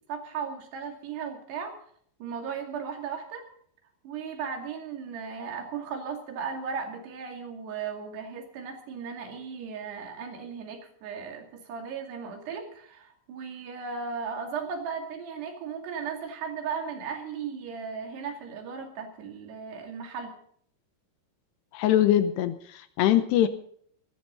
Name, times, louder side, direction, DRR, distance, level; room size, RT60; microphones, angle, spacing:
voice 1, 0.1-1.7 2.2-3.5 4.0-20.3, right 6 dB, 70° right, 3 dB, 4.5 m, -36 dB
voice 2, 21.7-23.5, left 12 dB, 80° left, 11 dB, 2.8 m, -23 dB
18.5 x 15.0 x 4.0 m, 0.62 s
omnidirectional pair, 5.1 m